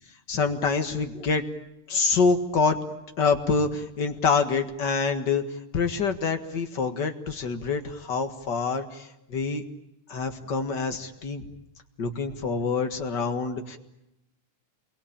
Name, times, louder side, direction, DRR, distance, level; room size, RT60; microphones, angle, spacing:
voice 1, 0.3-1.4 1.9-2.8 3.2-5.4 5.7-9.6 10.1-11.4 12.0-13.8, left 4 dB, 40° left, 7 dB, 1.9 m, -26 dB
28.0 x 23.0 x 8.7 m, 0.86 s
omnidirectional pair, 3.6 m